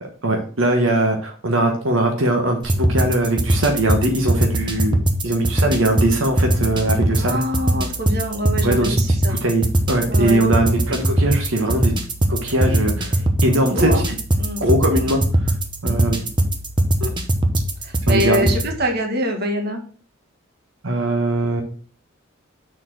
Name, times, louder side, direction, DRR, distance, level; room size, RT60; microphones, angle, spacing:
voice 1, 0.2-5.0 5.2-7.4 8.6-11.9 12.3-13.9 14.6-15.6 15.8-16.2 17.0-17.1 18.1-18.5 20.8-21.6, right 1 dB, 80° right, 2 dB, 1.2 m, -20 dB
sound 1, 2.6-18.7, right 1 dB, 25° right, 1.0 m, -21 dB
voice 2, 7.2-9.4 10.1-10.4 13.6-14.1 14.4-14.6 15.8-16.1 17.8-19.8, equal, 50° right, 3 dB, 1.6 m, -24 dB
6.3 x 4.4 x 6.1 m, 0.42 s
head